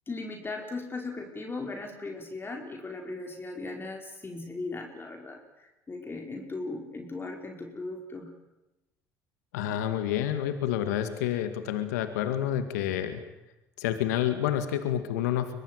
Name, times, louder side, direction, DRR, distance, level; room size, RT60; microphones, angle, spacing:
voice 1, 0.1-8.3, left 3 dB, 25° left, 2 dB, 4.9 m, -38 dB
voice 2, 9.5-13.2 13.8-15.5, left 11 dB, 85° left, 9 dB, 2.0 m, -29 dB
24.0 x 19.5 x 9.3 m, 0.97 s
hypercardioid pair, 75°, 9 cm